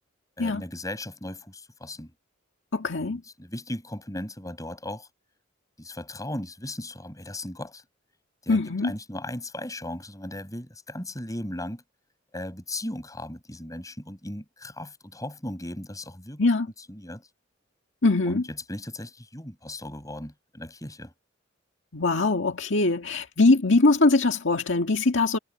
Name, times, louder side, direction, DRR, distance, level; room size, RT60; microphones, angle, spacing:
voice 1, 0.4-2.1 2.9-5.1 5.8-7.8 8.4-11.8 12.3-16.4 16.9-17.3 18.2-21.1, left 1 dB, 15° left, 6.3 m, -37 dB
voice 2, 2.7-3.2 8.5-8.9 16.4-16.7 18.0-18.4 21.9-25.4, left 3 dB, 65° left, 1.9 m, -22 dB
head